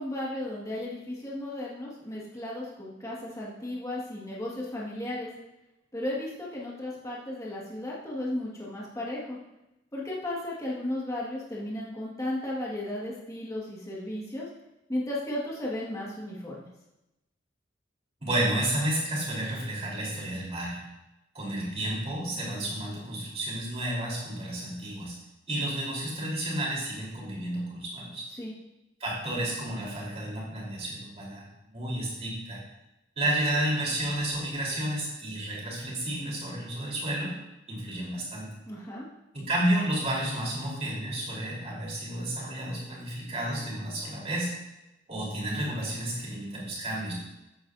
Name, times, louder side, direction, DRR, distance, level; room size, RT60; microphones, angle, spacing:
voice 1, 0.0-5.3 5.9-9.4 9.9-14.5 14.9-16.7 28.3-28.5 38.7-39.1, left 1 dB, 20° left, -5 dB, 1.9 m, -35 dB
voice 2, 18.2-20.8 21.3-25.1 25.5-28.2 29.0-31.5 31.7-32.6 33.2-37.3 37.7-38.5 39.3-44.5 45.1-47.1, right 1 dB, 35° right, -4 dB, 4.0 m, -31 dB
14.0 x 8.8 x 2.7 m, 0.94 s
head